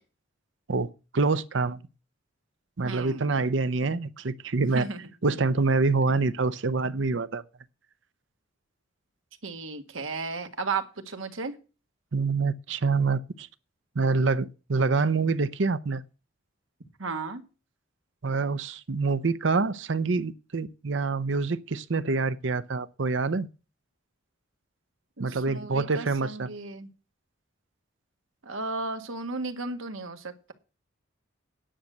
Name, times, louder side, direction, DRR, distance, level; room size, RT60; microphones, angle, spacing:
voice 1, 0.7-1.8 2.8-4.9 5.2-7.4 12.1-13.5 13.9-16.0 18.2-23.5 25.2-26.5, right 3 dB, 65° right, 0.7 m, -26 dB
voice 2, 2.8-3.4 4.6-5.0 9.4-11.5 17.0-17.4 25.2-26.9 28.4-30.5, right 3 dB, 90° right, 1.6 m, -34 dB
10.0 x 6.4 x 7.9 m
head